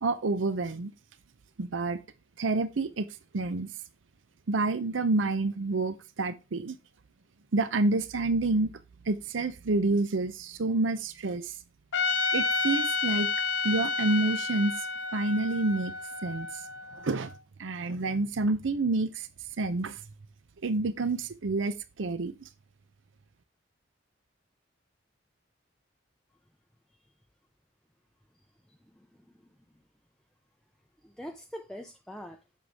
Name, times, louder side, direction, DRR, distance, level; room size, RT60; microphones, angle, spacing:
voice 1, 0.0-0.9 1.6-2.0 2.4-3.1 3.3-3.7 4.5-6.8 7.5-8.7 9.1-11.5 12.3-13.3 13.6-14.7 15.1-15.9 16.2-16.5 16.9-17.3 17.6-19.3 19.6-20.0 20.6-22.4, right 2 dB, 80° right, 0.6 m, -28 dB
Trumpet, 11.9-17.1, left 4 dB, 65° left, 0.7 m, -30 dB
voice 2, 28.7-29.5 31.0-32.4, equal, 5° left, 0.5 m, -44 dB
7.7 x 6.4 x 3.5 m
head